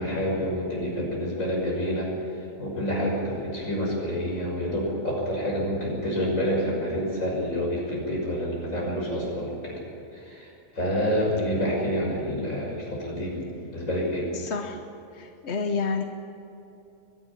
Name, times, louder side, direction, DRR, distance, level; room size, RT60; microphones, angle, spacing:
voice 1, 0.0-2.1 2.6-9.8 10.3-10.5 10.8-13.4 13.7-14.3, equal, 85° left, -2 dB, 6.8 m, -28 dB
voice 2, 14.3-14.8 15.1-16.0, left 4 dB, 60° left, 5 dB, 1.3 m, -29 dB
23.0 x 11.5 x 10.0 m, 2.9 s
omnidirectional pair, 1.3 m